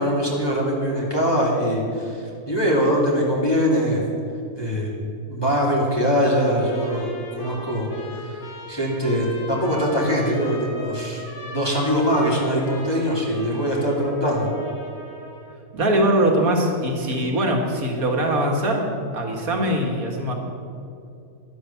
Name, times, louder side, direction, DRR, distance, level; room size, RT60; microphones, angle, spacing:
voice 1, 0.0-4.0 4.6-4.9 5.3-14.5, equal, 15° left, -4 dB, 2.5 m, -22 dB
Trumpet, 6.4-15.6, left 2 dB, 70° left, 2.9 m, -40 dB
voice 2, 15.7-18.9 19.1-20.3, right 1 dB, 75° right, 1 dB, 2.4 m, -21 dB
11.5 x 11.5 x 7.1 m, 2.6 s
omnidirectional pair, 1.5 m